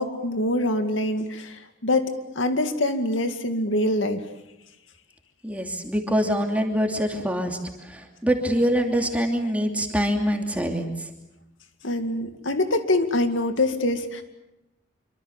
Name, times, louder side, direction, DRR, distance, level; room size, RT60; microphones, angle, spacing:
voice 1, 0.0-2.1 2.4-4.2 11.8-14.2, left 1 dB, 80° left, 7 dB, 2.2 m, -24 dB
voice 2, 5.4-10.9, equal, 5° right, 2 dB, 2.8 m, -24 dB
27.0 x 25.0 x 7.2 m, 0.92 s
head